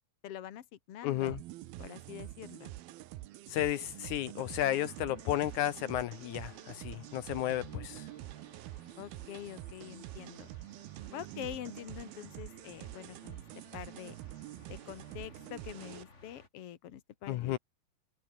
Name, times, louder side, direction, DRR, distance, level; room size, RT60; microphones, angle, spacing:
voice 1, 0.2-1.4 1.8-2.7 9.0-10.5 11.1-14.2 14.7-17.6, left 11 dB, 55° left, 1.8 m, -45 dB
voice 2, 1.0-1.4 3.5-8.1 17.3-17.6, left 13 dB, 75° left, 1.8 m, -33 dB
sound 1, 1.3-16.0, right 16 dB, 85° right, 2.9 m, -46 dB
sound 2, 4.5-16.5, left 3 dB, 20° left, 3.0 m, -60 dB
open air
omnidirectional pair, 4.3 m